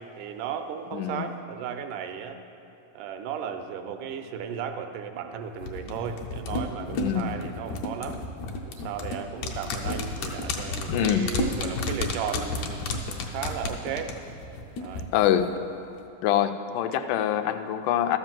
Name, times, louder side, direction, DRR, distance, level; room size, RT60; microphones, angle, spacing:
voice 1, 0.0-2.4 2.9-8.2 8.6-13.0 13.3-14.1 14.8-15.1 16.9-17.1, right 7 dB, 85° right, 6 dB, 2.2 m, -35 dB
voice 2, 0.9-1.3 6.9-7.3 10.9-11.3 15.1-15.5 16.2-18.2, left 10 dB, 85° left, 9 dB, 2.1 m, -25 dB
sound 1, 5.6-15.0 15.3-15.4, left 3 dB, 70° left, 1.9 m, -31 dB
13.0 x 5.2 x 7.4 m, 2.7 s
omnidirectional pair, 3.6 m